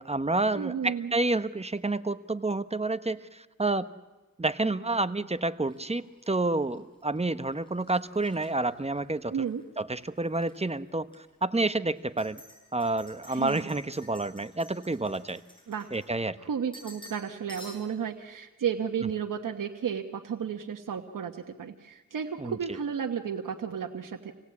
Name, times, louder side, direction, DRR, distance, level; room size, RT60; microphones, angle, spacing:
voice 1, 0.0-3.9 4.4-9.3 9.8-12.4 12.7-15.4 15.9-16.4 22.4-22.6, right 2 dB, 20° right, 12 dB, 0.9 m, -29 dB
voice 2, 0.5-1.1 9.3-9.6 13.3-13.7 15.7-15.9 16.4-24.3, right 7 dB, 85° right, 3 dB, 1.2 m, -33 dB
sound 1, 5.7-9.6 9.9-10.6 11.1-11.2 12.0-16.4 16.7-17.2 17.5-18.1, left 1 dB, 15° left, 8.0 m, -52 dB
26.5 x 17.5 x 8.5 m, 1.2 s
cardioid pair, 60°, 32 cm